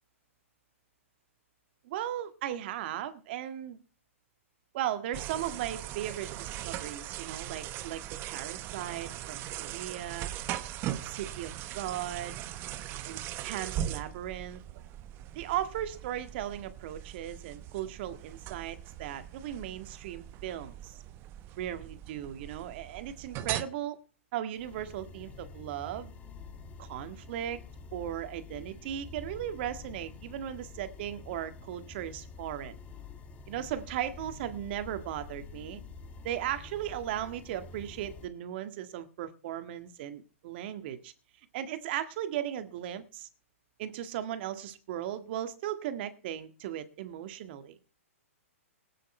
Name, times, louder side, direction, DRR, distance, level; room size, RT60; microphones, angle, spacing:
voice 1, 1.8-3.8 4.7-10.3 11.0-12.4 13.0-14.6 15.3-21.0 21.6-24.0 24.3-26.1 26.8-27.6 27.9-32.8 33.5-35.8 36.2-41.1 41.5-43.3 43.8-47.8, right 11 dB, 45° right, 1.8 m, -37 dB
sound 1, 5.1-23.6, right 12 dB, 30° right, 1.0 m, -40 dB
sound 2, 24.5-38.3, left 4 dB, 20° left, 1.9 m, -47 dB
18.5 x 9.2 x 4.4 m
hypercardioid pair, 130°, 8 cm